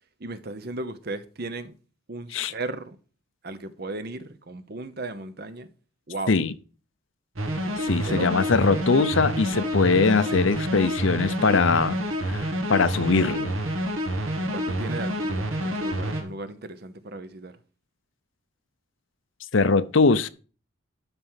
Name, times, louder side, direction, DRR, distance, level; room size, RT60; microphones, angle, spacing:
voice 1, 0.2-1.7 2.1-3.0 3.4-5.7 6.1-6.3 8.0-8.5 14.5-17.6, right 2 dB, 50° right, 0.9 m, -36 dB
sound 1, 7.4-16.2, equal, 85° right, 2.3 m, -28 dB
voice 2, 7.8-12.0 12.3-13.6 19.5-20.3, left 4 dB, 70° left, 0.7 m, -21 dB
12.5 x 4.6 x 5.7 m
head